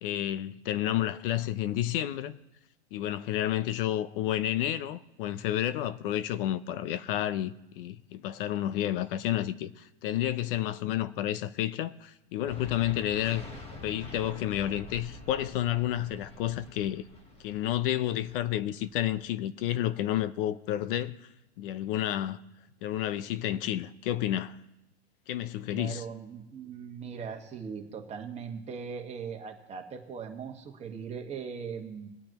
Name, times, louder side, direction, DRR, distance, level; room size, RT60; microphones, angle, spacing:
voice 1, 0.0-2.4 2.9-13.5 13.8-17.0 17.4-21.2 21.6-22.4 22.8-24.5 25.3-26.0, left 12 dB, 55° left, 0.7 m, -30 dB
sound 1, 12.5-19.5, left 1 dB, 20° left, 1.4 m, -47 dB
voice 2, 25.7-32.1, right 6 dB, 20° right, 1.6 m, -39 dB
22.5 x 8.6 x 3.0 m
supercardioid pair, 140°, 33 cm